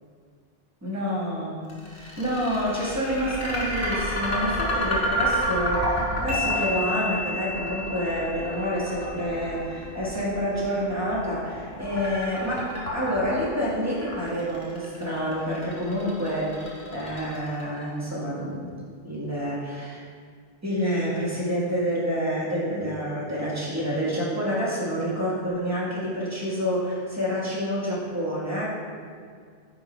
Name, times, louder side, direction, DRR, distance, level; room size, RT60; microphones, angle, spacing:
voice 1, 0.8-1.6 1.9-20.0 20.6-28.7, equal, 15° right, -6 dB, 1.4 m, -28 dB
sound 1, 1.7-17.8, equal, 65° left, 1.8 m, -30 dB
sound 2, 6.3-9.8, left 3 dB, 60° right, 1.6 m, -33 dB
4.9 x 4.6 x 5.1 m, 2.1 s
omnidirectional pair, 1.0 m